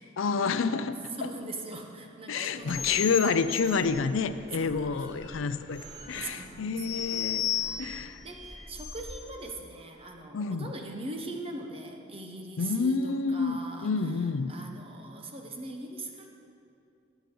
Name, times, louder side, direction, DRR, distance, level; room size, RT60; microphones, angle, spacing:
voice 1, 0.2-1.3 2.3-7.5 7.8-8.2 10.3-10.7 12.6-14.5, left 5 dB, 85° left, 12 dB, 0.5 m, -29 dB
voice 2, 1.2-3.2 3.5-3.6 4.6-5.0 6.1-7.0 7.5-7.9 8.2-13.9 14.5-16.3, right 2 dB, 30° right, 2 dB, 1.0 m, -41 dB
sound 1, 2.6-9.3, left 8 dB, 25° left, 2.1 m, -36 dB
18.5 x 8.1 x 3.9 m, 2.6 s
head